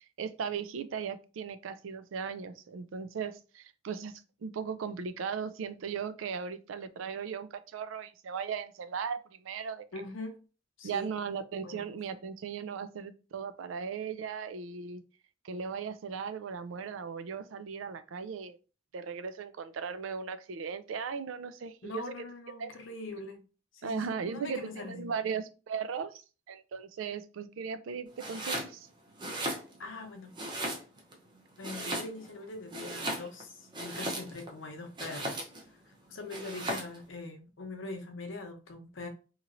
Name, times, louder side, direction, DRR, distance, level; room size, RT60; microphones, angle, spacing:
voice 1, 0.2-9.8 10.8-15.0 15.4-18.6 18.9-22.1 22.6-22.7 23.8-26.2 26.5-28.9, right 6 dB, 85° right, 0.4 m, -37 dB
voice 2, 9.9-10.4 10.8-11.1 11.6-11.8 21.8-23.4 23.7-25.1 29.8-30.3 31.6-35.5 35.9-39.1, left 2 dB, 80° left, 0.7 m, -42 dB
Domestic sounds home sounds, 28.2-28.7 29.1-30.0 30.4-31.1 31.6-32.4 32.7-34.5 35.0-35.7 36.3-37.0, right 1 dB, 25° right, 0.6 m, -36 dB
2.9 x 2.8 x 2.5 m
head